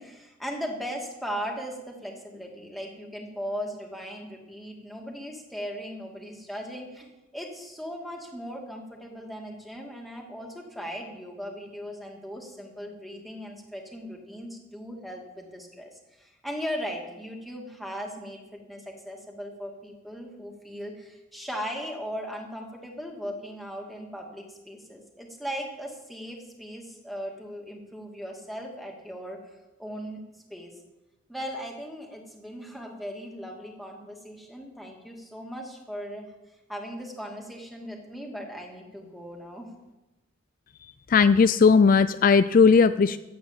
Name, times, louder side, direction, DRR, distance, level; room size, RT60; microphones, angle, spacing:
voice 1, 0.0-29.5 29.8-30.2 30.5-30.8 31.3-36.3 36.7-39.7, equal, ahead, 0 dB, 2.3 m, -38 dB
voice 2, 40.8-43.2, left 5 dB, 45° left, 12 dB, 0.4 m, -18 dB
15.0 x 8.6 x 7.4 m, 1.0 s
head